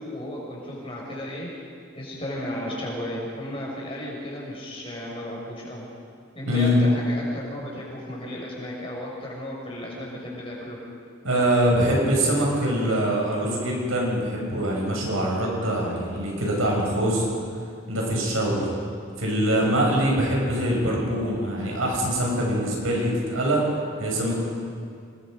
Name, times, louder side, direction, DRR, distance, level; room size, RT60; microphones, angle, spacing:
voice 1, 0.0-1.5 1.9-5.9 6.3-10.8, left 1 dB, 25° left, -3 dB, 6.2 m, -34 dB
voice 2, 6.5-6.8 11.2-17.2 17.9-18.7 19.2-23.6 24.0-24.4, equal, 85° right, -2 dB, 6.4 m, -23 dB
27.0 x 21.0 x 5.2 m, 2.2 s
head